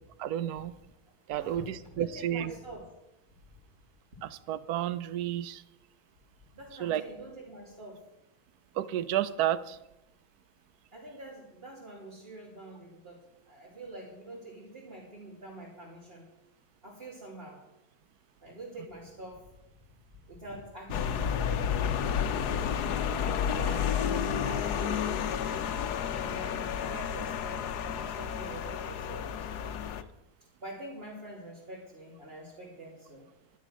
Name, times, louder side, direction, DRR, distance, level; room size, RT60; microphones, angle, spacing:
voice 1, 0.2-0.7 1.3-2.5 4.2-5.6 6.8-7.0 8.7-9.8, right 11 dB, 75° right, 15 dB, 1.2 m, -31 dB
voice 2, 1.3-2.9 6.5-8.0 10.9-16.3 16.8-17.6 18.4-19.5 20.1-21.8 23.5-25.1 26.1-29.7 30.6-33.3, right 1 dB, 35° right, -6 dB, 3.1 m, -46 dB
sound 1, 20.9-30.0, left 8 dB, 85° left, 1.3 m, -31 dB
12.0 x 11.5 x 6.3 m, 0.89 s
omnidirectional pair, 1.7 m